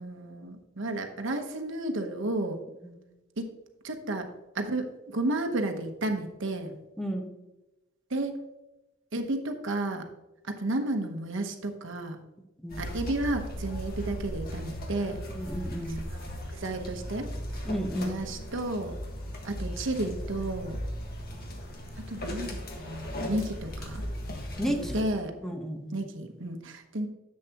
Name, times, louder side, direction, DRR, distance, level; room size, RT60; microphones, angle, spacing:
voice 1, 0.0-2.6 3.4-3.5 3.8-4.3 4.5-6.8 8.1-8.4 9.1-10.1 10.5-12.2 12.8-15.2 16.1-16.3 16.5-17.3 17.5-17.7 18.0-18.9 19.4-20.8 22.0-24.0 24.7-25.3 25.9-27.1, right 2 dB, 65° right, 5 dB, 1.1 m, -32 dB
voice 2, 7.0-7.3 12.6-12.9 15.3-16.0 17.6-18.2 24.6-25.0 25.4-26.0, equal, ahead, 3 dB, 1.0 m, -33 dB
sound 1, 12.7-25.0, equal, 50° left, 1.5 m, -37 dB
10.5 x 7.6 x 2.9 m, 1.0 s
head